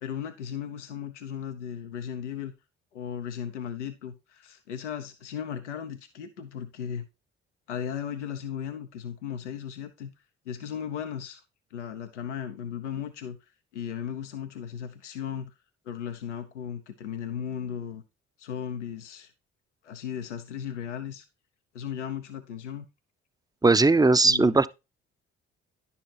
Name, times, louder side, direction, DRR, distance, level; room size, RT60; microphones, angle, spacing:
voice 1, 0.0-2.5 2.9-7.1 7.7-10.1 10.5-11.4 11.7-13.4 13.7-15.5 15.9-18.0 18.4-19.3 19.8-21.3 21.7-22.9 24.2-24.6, left 8 dB, 90° left, 0.6 m, -36 dB
voice 2, 23.6-24.7, right 3 dB, 10° right, 0.5 m, -19 dB
10.5 x 6.9 x 2.8 m
hypercardioid pair, 45°, 35 cm